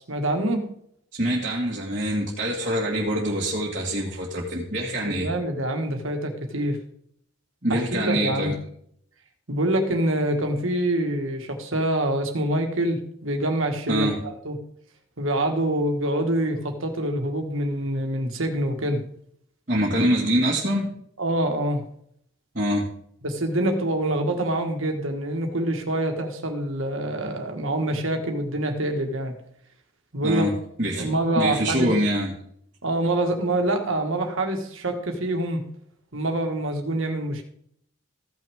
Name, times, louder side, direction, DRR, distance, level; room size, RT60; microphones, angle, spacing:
voice 1, 0.1-0.6 5.0-6.8 7.7-8.5 9.5-14.5 15.2-19.0 21.2-21.8 23.2-29.3 30.1-30.5 30.9-31.9 32.8-35.6 36.1-37.4, right 1 dB, 75° right, 4 dB, 1.7 m, -25 dB
voice 2, 1.1-5.3 7.6-8.5 13.9-14.2 19.7-20.9 22.5-22.9 30.2-30.5 30.8-32.3, equal, 40° right, -7 dB, 1.8 m, -24 dB
15.0 x 6.1 x 3.6 m, 0.66 s
head